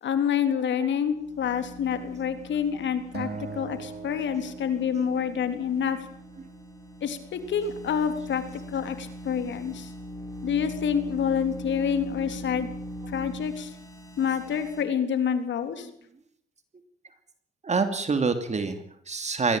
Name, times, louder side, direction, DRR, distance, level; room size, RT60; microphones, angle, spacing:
voice 1, 0.0-3.3 3.5-6.0 7.0-8.4 8.7-9.9 10.4-12.7 13.1-13.8 14.2-15.9, left 8 dB, 65° left, 9 dB, 3.6 m, -27 dB
sound 1, 1.0-14.8, right 1 dB, 15° left, 6.0 m, -41 dB
Acoustic guitar, 3.1-5.5, right 4 dB, 55° right, 4.1 m, -39 dB
voice 2, 17.6-19.6, right 4 dB, 35° right, 8 dB, 2.9 m, -26 dB
22.0 x 17.0 x 9.0 m, 0.68 s
cardioid pair, 90°, 20 cm